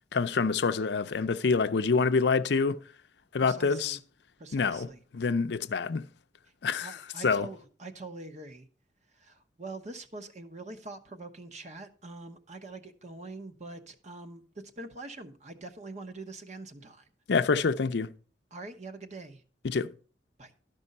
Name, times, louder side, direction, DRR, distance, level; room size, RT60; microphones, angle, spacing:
voice 1, 0.1-2.8 3.3-4.0 4.5-4.9 5.1-6.0 6.6-7.0 7.2-7.5 17.3-18.1 19.6-19.9, left 4 dB, 65° left, 0.5 m, -26 dB
voice 2, 3.4-4.0 4.4-5.0 6.8-8.7 9.1-14.4 14.8-17.1 18.5-19.4 20.4-20.5, right 2 dB, 40° right, 1.0 m, -44 dB
12.5 x 5.3 x 5.3 m
head